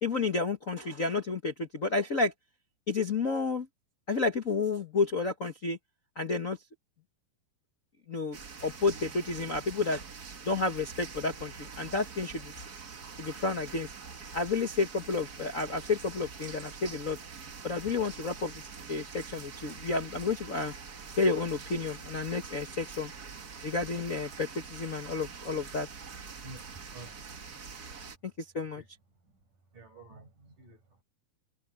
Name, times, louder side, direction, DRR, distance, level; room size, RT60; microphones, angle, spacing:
voice 1, 0.0-2.3 2.9-3.7 4.1-5.8 6.1-6.6 8.1-10.0 10.4-12.6 13.2-13.9 14.3-17.2 17.6-20.7 21.2-23.1 23.6-25.9 28.4-28.8, left 3 dB, 75° left, 0.7 m, -31 dB
sound 1, 8.3-28.2, right 5 dB, 40° right, 1.4 m, -45 dB
voice 2, 26.3-27.2 28.0-28.4 28.8-28.9 29.2-29.4 29.7-31.0, right 3 dB, 65° right, 9.4 m, -51 dB
omnidirectional pair, 4.0 m